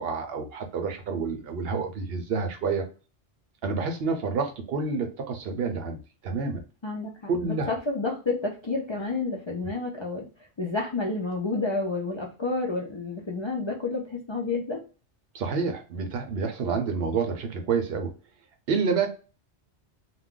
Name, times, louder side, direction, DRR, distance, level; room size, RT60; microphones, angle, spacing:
voice 1, 0.0-2.8 3.6-6.6 7.3-7.7 15.3-18.1 18.7-19.1, right 5 dB, 65° right, 5 dB, 0.7 m, -28 dB
voice 2, 6.8-10.3 10.6-14.8, left 3 dB, 50° left, -1 dB, 0.3 m, -30 dB
2.3 x 2.2 x 3.6 m, 0.35 s
omnidirectional pair, 1.2 m